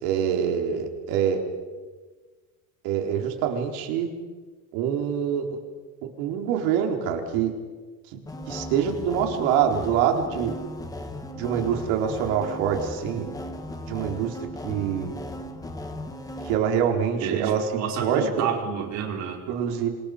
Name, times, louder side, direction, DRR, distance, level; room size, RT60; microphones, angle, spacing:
voice 1, 0.0-1.4 2.8-4.1 4.7-5.5 6.2-7.5 8.5-10.5 11.4-13.3 13.9-14.4 14.6-15.2 16.4-17.7 18.0-18.6 19.5-19.9, right 8 dB, 85° right, 3 dB, 4.2 m, -25 dB
sound 1, 8.3-16.6, left 1 dB, 10° left, 1.7 m, -37 dB
voice 2, 17.2-19.4, right 7 dB, 45° right, 1 dB, 5.1 m, -30 dB
28.5 x 27.0 x 5.2 m, 1.4 s
cardioid pair, 180°, 38 cm